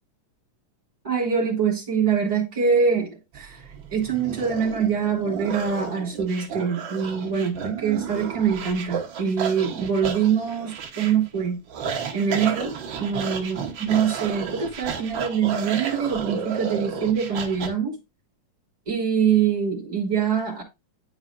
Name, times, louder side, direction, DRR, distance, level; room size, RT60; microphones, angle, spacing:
voice 1, 1.0-3.6 3.9-11.6 12.1-18.0 18.9-20.6, right 7 dB, 15° right, 3.1 m, -24 dB
sound 1, 3.3-17.7, right 7 dB, 65° right, 1.2 m, -33 dB
11.0 x 4.9 x 2.4 m
omnidirectional pair, 3.6 m